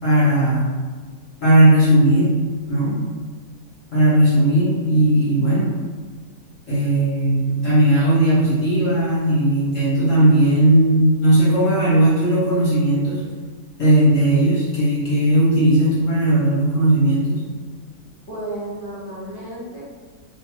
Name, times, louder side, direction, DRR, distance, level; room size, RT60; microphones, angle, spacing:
voice 1, 0.0-0.7 1.4-2.3 2.7-3.0 3.9-5.8 6.7-13.2 13.8-17.3, right 1 dB, 50° left, -10 dB, 1.5 m, -17 dB
voice 2, 18.3-19.8, right 1 dB, 10° left, -11 dB, 1.0 m, -32 dB
3.2 x 3.1 x 2.9 m, 1.5 s
omnidirectional pair, 1.7 m